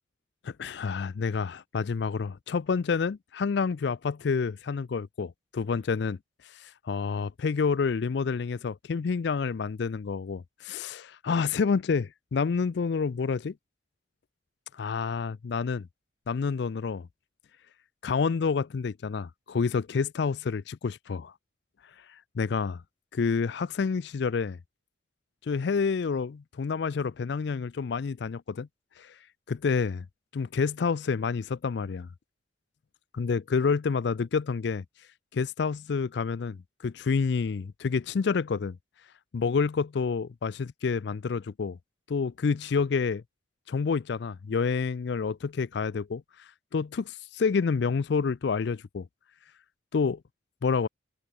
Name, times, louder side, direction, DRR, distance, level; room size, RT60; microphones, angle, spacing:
voice 1, 0.4-6.2 6.4-13.5 14.7-15.9 16.3-17.1 18.0-21.3 22.0-22.8 23.1-24.6 25.4-28.7 29.0-29.2 29.5-30.1 30.3-32.1 33.1-34.8 35.3-38.8 39.3-41.8 42.1-43.2 43.7-49.1 49.9-50.2 50.6-50.9, left 5 dB, 60° left, 0.4 m, -28 dB
head